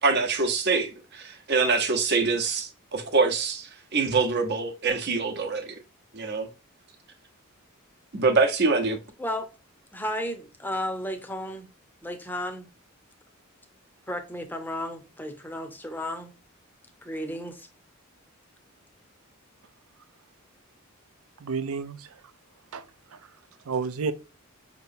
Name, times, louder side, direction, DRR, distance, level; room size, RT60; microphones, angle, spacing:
voice 1, 0.0-5.8 6.1-6.5 8.1-9.0, right 4 dB, 50° right, 0.9 m, -25 dB
voice 2, 9.9-11.7 12.0-12.7 14.1-16.3 17.0-17.7, left 1 dB, 10° left, 0.7 m, -33 dB
voice 3, 21.4-22.2 22.7-22.8 23.1-23.2 23.7-24.1, right 5 dB, 85° right, 0.5 m, -30 dB
5.5 x 3.0 x 2.6 m
head